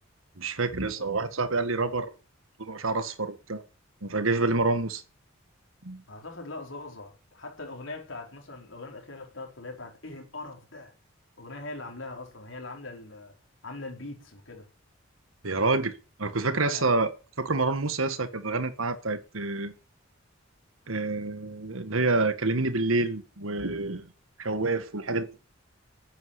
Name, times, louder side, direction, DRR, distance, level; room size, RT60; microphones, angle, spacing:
voice 1, 0.4-2.1 2.6-3.6 4.0-5.0 5.8-6.0 15.4-15.9 16.2-17.1 17.4-19.7 20.9-24.1 24.4-25.3, right 3 dB, 85° right, 1.6 m, -27 dB
voice 2, 6.1-10.9 11.4-13.3 13.6-14.7 16.5-16.9, left 2 dB, 65° left, 4.8 m, -41 dB
10.5 x 9.4 x 9.8 m
head